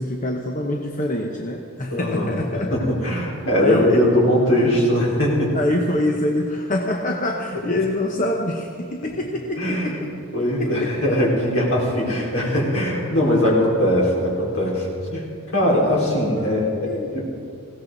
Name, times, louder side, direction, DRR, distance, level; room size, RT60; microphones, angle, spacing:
voice 1, 0.0-2.8 3.6-4.1 5.5-10.9 12.2-12.3 16.3-16.5 16.9-17.1, left 1 dB, 35° left, 1 dB, 0.9 m, -25 dB
voice 2, 1.9-5.6 9.6-10.0 10.3-17.2, equal, 70° left, -4 dB, 4.7 m, -21 dB
20.0 x 17.0 x 4.0 m, 2.5 s
head